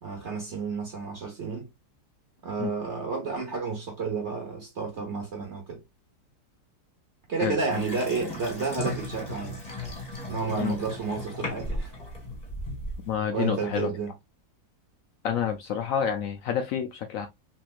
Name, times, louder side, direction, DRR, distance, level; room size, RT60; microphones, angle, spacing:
voice 1, 0.0-1.7 2.4-5.8 7.3-9.6 10.3-11.9 13.3-14.1, right 4 dB, 50° right, 0.9 m, -31 dB
Water tap faucet / Sink (filling or washing) / Bathtub (filling or washing), 7.7-13.1, left 1 dB, 25° left, 1.6 m, -36 dB
voice 2, 13.1-13.9 15.2-17.3, left 8 dB, 80° left, 0.7 m, -28 dB
3.3 x 2.9 x 2.4 m
omnidirectional pair, 2.0 m